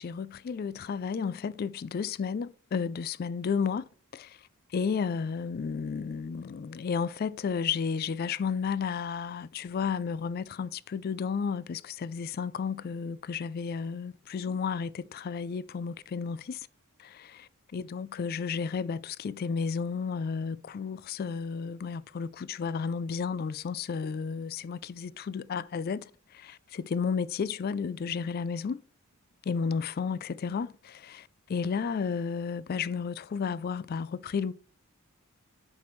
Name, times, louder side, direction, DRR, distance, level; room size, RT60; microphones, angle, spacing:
voice 1, 0.0-3.8 4.1-16.7 17.0-28.8 29.4-34.5, left 6 dB, 45° left, 0.3 m, -32 dB
7.3 x 6.0 x 3.1 m
head